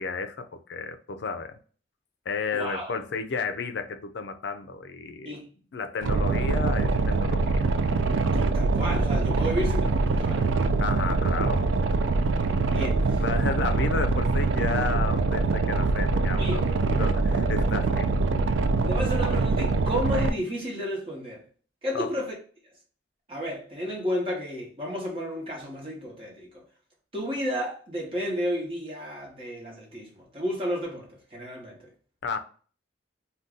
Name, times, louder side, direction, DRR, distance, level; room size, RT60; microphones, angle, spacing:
voice 1, 0.0-1.6 2.3-5.4 5.7-7.7 10.8-11.7 13.2-18.1 21.9-22.1 32.2-32.4, left 4 dB, 65° left, 0.4 m, -32 dB
voice 2, 2.5-2.9 5.2-5.4 8.3-10.5 12.7-13.2 16.4-16.6 18.9-21.4 21.8-22.3 23.3-26.6 27.1-31.9, equal, 30° right, 1.0 m, -32 dB
Boat Water vehicle, 6.0-20.3, right 3 dB, 80° right, 0.4 m, -24 dB
2.6 x 2.2 x 3.6 m
head